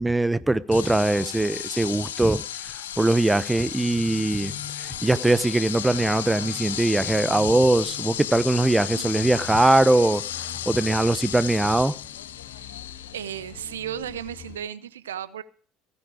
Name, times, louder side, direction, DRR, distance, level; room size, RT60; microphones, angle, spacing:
voice 1, 0.0-10.2 10.7-12.0, right 2 dB, 10° right, 0.9 m, -21 dB
sound 1, 0.7-14.6, left 11 dB, 80° left, 0.7 m, -34 dB
sound 2, 3.7-14.6, left 9 dB, 55° left, 1.9 m, -45 dB
voice 2, 13.1-15.4, right 10 dB, 80° right, 0.7 m, -34 dB
16.5 x 9.7 x 5.0 m
hypercardioid pair, 65°, 0 cm